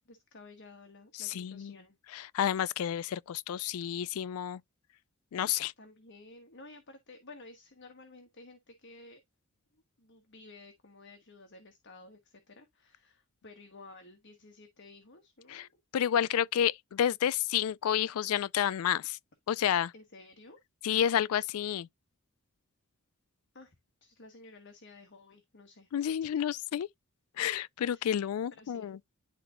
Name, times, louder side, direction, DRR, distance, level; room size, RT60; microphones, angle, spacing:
voice 1, 0.1-2.0 5.8-9.2 10.0-15.8 19.9-20.6 23.5-23.8 24.0-25.9 27.9-28.1 28.5-28.9, left 2 dB, 55° left, 1.3 m, -53 dB
voice 2, 1.2-1.8 2.1-4.6 5.3-5.7 15.5-15.7 15.9-19.2 19.5-19.9 20.8-21.9 25.9-26.9 27.4-29.0, left 9 dB, 75° left, 0.3 m, -30 dB
11.0 x 3.9 x 2.5 m
head